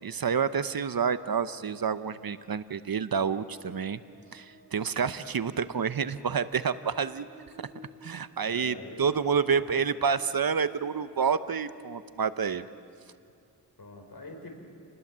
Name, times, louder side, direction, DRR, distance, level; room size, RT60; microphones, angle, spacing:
voice 1, 0.0-4.0 4.3-7.3 7.6-7.7 8.0-12.7, right 6 dB, 60° right, 13 dB, 0.8 m, -29 dB
Buzz, 3.2-12.7, equal, 80° right, 4.7 m, -56 dB
voice 2, 8.4-9.8 13.8-14.5, left 2 dB, 60° left, 3 dB, 4.8 m, -45 dB
29.5 x 20.0 x 7.4 m, 2.5 s
wide cardioid pair, 65°, 41 cm